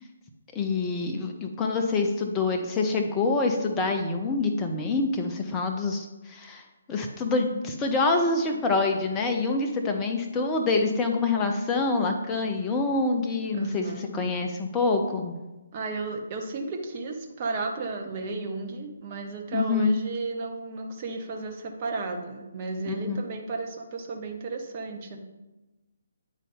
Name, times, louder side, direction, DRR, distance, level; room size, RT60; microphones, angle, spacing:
voice 1, 0.5-6.6 6.9-15.4 19.5-20.0 22.9-23.2, left 3 dB, 15° left, 3 dB, 0.6 m, -26 dB
voice 2, 13.5-14.3 15.7-25.2, right 3 dB, 30° right, 2 dB, 0.8 m, -34 dB
9.1 x 4.0 x 3.6 m, 1.1 s
figure-of-eight pair, 140°, 0 cm